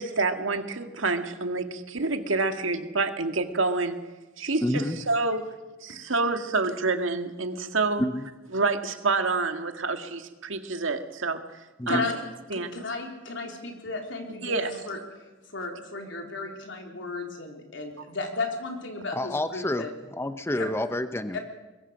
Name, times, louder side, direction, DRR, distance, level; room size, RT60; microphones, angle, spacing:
voice 1, 0.0-4.0 4.4-5.5 5.8-8.0 8.5-11.4 11.9-12.0 12.5-12.7 14.4-14.7, right 3 dB, 90° right, 7 dB, 1.8 m, -27 dB
voice 2, 4.6-5.0 8.0-8.3 11.8-12.0 19.1-21.4, left 1 dB, 15° left, 10 dB, 0.7 m, -29 dB
voice 3, 12.5-19.9 20.5-20.7 21.3-21.4, left 3 dB, 70° left, 3 dB, 3.8 m, -34 dB
22.5 x 22.0 x 6.5 m, 1.1 s
head